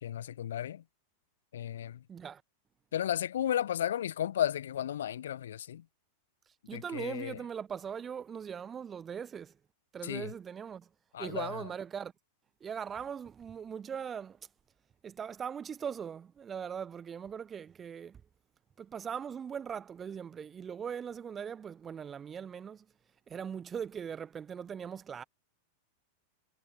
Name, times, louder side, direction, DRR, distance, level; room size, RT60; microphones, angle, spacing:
voice 1, 0.0-0.8 1.5-2.0 2.9-5.8 6.7-7.4 10.0-10.3 11.1-11.6, left 10 dB, 60° left, 1.0 m, -34 dB
voice 2, 2.1-2.4 6.7-9.5 9.9-10.9 11.2-12.1 12.6-14.4 15.0-18.2 18.8-22.9 23.3-25.2, right 7 dB, 20° right, 1.2 m, -40 dB
figure-of-eight pair, 90°, 0 cm